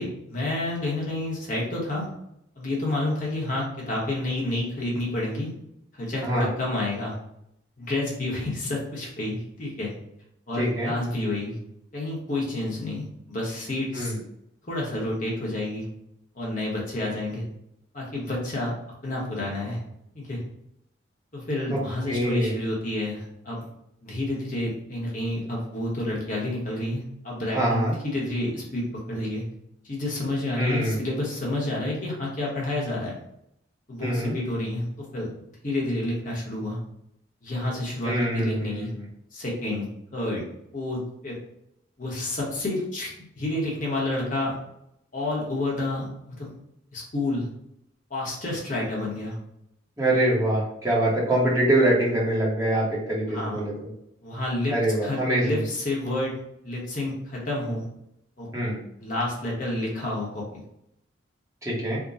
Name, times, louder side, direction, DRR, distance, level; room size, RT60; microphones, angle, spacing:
voice 1, 0.0-2.1 2.6-5.5 5.9-7.2 7.8-9.9 10.5-11.6 11.9-14.1 14.7-15.9 16.3-17.4 17.9-18.7 19.0-19.8 20.1-20.4 21.3-23.7 24.0-29.4 29.8-33.1 33.9-35.3 35.6-36.8 37.4-38.9 39.3-40.4 40.7-41.4 42.0-44.6 45.1-46.5 46.9-47.5 48.1-49.4 53.3-53.6 54.2-54.7 55.0-56.3 56.6-57.8 58.4-58.7 59.0-60.6, left 1 dB, 40° left, -4 dB, 1.0 m, -29 dB
voice 2, 10.6-10.9 13.9-14.2 21.7-21.8 22.1-22.5 27.5-27.9 30.6-31.0 34.0-34.3 38.0-39.0 50.0-53.7 54.7-55.6 58.5-58.8 61.6-62.0, right 1 dB, 15° right, -7 dB, 1.0 m, -24 dB
3.6 x 2.2 x 4.0 m, 0.77 s
head